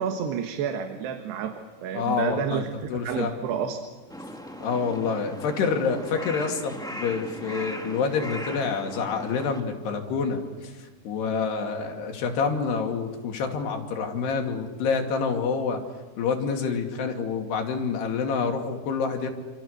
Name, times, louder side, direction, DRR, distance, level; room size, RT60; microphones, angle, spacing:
voice 1, 0.0-3.8, right 7 dB, 80° right, 5 dB, 3.6 m, -30 dB
voice 2, 1.9-2.6 2.9-3.3 4.6-10.7 11.0-15.8 16.2-19.3, left 5 dB, 80° left, 4 dB, 4.6 m, -27 dB
Crow, 4.1-9.6, equal, 5° left, 0.7 m, -38 dB
29.5 x 27.0 x 6.6 m, 1.3 s
omnidirectional pair, 4.7 m